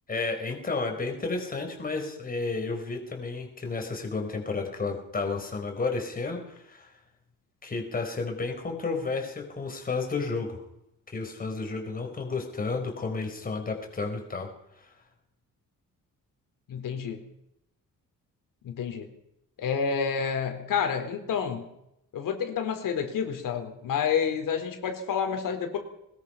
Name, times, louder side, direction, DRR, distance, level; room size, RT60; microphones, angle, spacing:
voice 1, 0.1-6.9 7.6-10.6 11.1-14.5, left 3 dB, 25° left, 4 dB, 4.6 m, -32 dB
voice 2, 16.7-17.2 18.6-19.1 19.6-21.7 22.1-25.8, left 7 dB, 75° left, 5 dB, 4.1 m, -29 dB
22.0 x 20.5 x 5.8 m, 0.81 s
cardioid pair, 160°, 33 cm